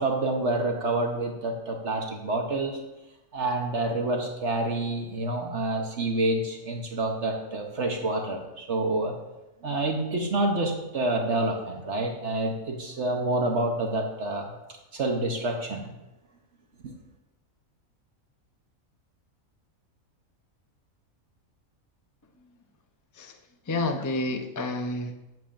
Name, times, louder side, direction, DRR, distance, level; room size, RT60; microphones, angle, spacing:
voice 1, 0.0-2.8 3.3-9.2 9.6-14.5 14.9-15.9 16.8-16.9, right 2 dB, 55° right, 2 dB, 1.3 m, -28 dB
voice 2, 23.7-25.1, left 2 dB, 30° left, 5 dB, 0.3 m, -29 dB
15.5 x 7.3 x 2.6 m, 0.99 s
omnidirectional pair, 1.5 m